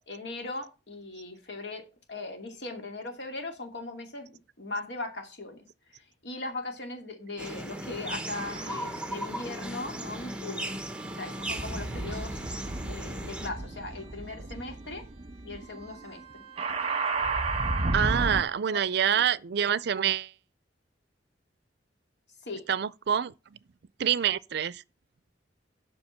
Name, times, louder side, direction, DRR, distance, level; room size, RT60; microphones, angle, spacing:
voice 1, 0.1-4.3 4.6-5.7 5.9-10.7 11.1-12.4 12.8-15.0 15.4-16.4 18.7-18.8 19.1-19.3 22.4-22.6, left 2 dB, 65° left, 2.5 m, -39 dB
sound 1, 7.4-13.5, right 1 dB, 5° right, 1.1 m, -37 dB
sound 2, 8.3-9.1 9.9-18.4, right 3 dB, 35° right, 1.2 m, -34 dB
voice 2, 17.9-20.3 22.7-23.6 24.0-24.8, right 8 dB, 65° right, 0.4 m, -26 dB
8.0 x 5.8 x 7.1 m
head